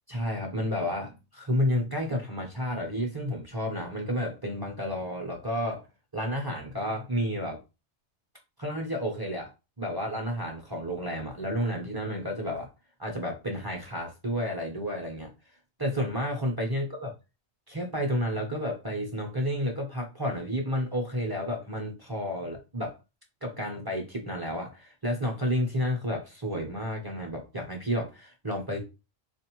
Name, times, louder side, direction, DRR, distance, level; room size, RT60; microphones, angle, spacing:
voice 1, 0.1-5.9 6.1-7.6 8.6-9.5 9.8-12.7 13.0-15.3 15.8-17.1 17.7-23.0 23.4-28.8, equal, 25° right, 0.6 m, -31 dB
3.9 x 2.5 x 2.9 m
omnidirectional pair, 1.4 m